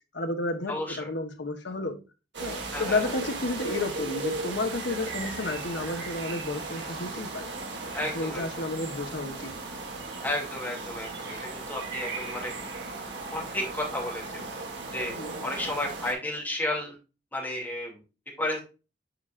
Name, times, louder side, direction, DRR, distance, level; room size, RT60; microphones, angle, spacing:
voice 1, 0.1-2.0 2.4-7.5 8.0-9.5 15.1-15.5, left 2 dB, 75° left, 1.1 m, -32 dB
voice 2, 0.7-1.1 2.7-3.1 7.9-8.7 10.2-12.5 13.3-14.2 14.9-15.1 15.4-17.0 17.3-18.0 18.4-18.6, left 1 dB, 10° left, 2.5 m, -32 dB
sound 1, 2.3-16.1, right 3 dB, 75° right, 1.9 m, -36 dB
8.0 x 5.0 x 2.5 m
head